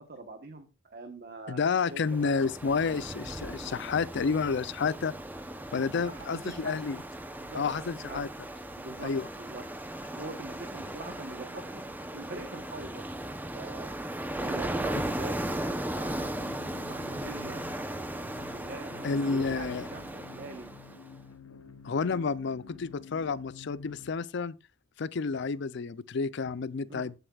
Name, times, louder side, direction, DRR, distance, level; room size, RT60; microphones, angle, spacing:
voice 1, 0.0-2.5 6.0-6.8 7.4-8.2 8.8-9.6 10.1-11.9 12.1-13.1 13.5-16.4 16.8-17.8 18.5-20.7 26.9-27.1, right 2 dB, 50° right, 1.1 m, -44 dB
voice 2, 1.5-5.1 5.7-7.0 7.5-8.3 9.0-9.3 19.0-19.9 21.8-24.5 25.0-27.1, left 5 dB, 60° left, 0.4 m, -30 dB
Ocean, 1.9-21.1, right 1 dB, 10° right, 0.7 m, -37 dB
sound 1, 5.8-7.5, left 2 dB, 15° left, 4.2 m, -61 dB
sound 2, 16.1-24.1, left 4 dB, 85° left, 0.9 m, -50 dB
14.0 x 7.8 x 2.4 m
head